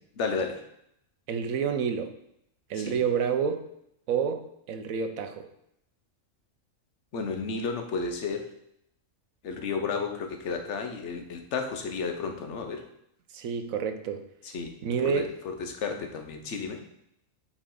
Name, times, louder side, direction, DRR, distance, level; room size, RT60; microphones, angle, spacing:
voice 1, 0.2-0.6 2.8-3.0 7.1-8.5 9.4-12.8 14.5-14.7 15.0-16.8, left 5 dB, 65° left, 5 dB, 1.1 m, -32 dB
voice 2, 1.3-2.1 2.7-3.6 4.1-5.5 13.3-14.2 14.8-15.3, right 7 dB, 90° right, 8 dB, 1.1 m, -29 dB
8.5 x 4.3 x 3.8 m, 0.76 s
omnidirectional pair, 1.4 m